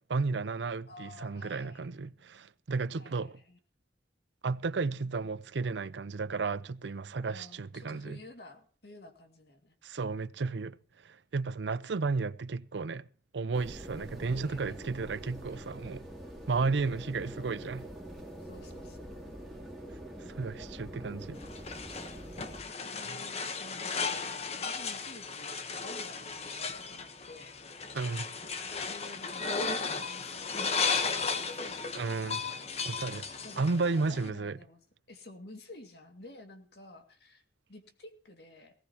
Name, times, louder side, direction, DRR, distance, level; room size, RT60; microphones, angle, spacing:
voice 1, 0.0-3.4 4.4-8.2 9.8-10.8 11.0-13.0 13.3-16.0 16.5-17.9 20.3-21.4 27.9-28.3 32.0-32.5 32.9-33.3 33.6-34.6, right 4 dB, 85° right, 0.6 m, -33 dB
voice 2, 0.9-1.9 3.0-3.6 7.2-9.7 13.9-14.8 16.7-17.4 18.4-19.2 21.0-21.5 22.7-27.5 28.9-32.0 33.4-34.8 35.1-37.4 37.7-38.7, left 2 dB, 65° left, 2.2 m, -52 dB
sound 1, 13.5-22.6, right 1 dB, ahead, 2.7 m, -45 dB
sound 2, 21.4-34.3, left 5 dB, 35° left, 1.0 m, -35 dB
19.0 x 17.0 x 2.9 m
head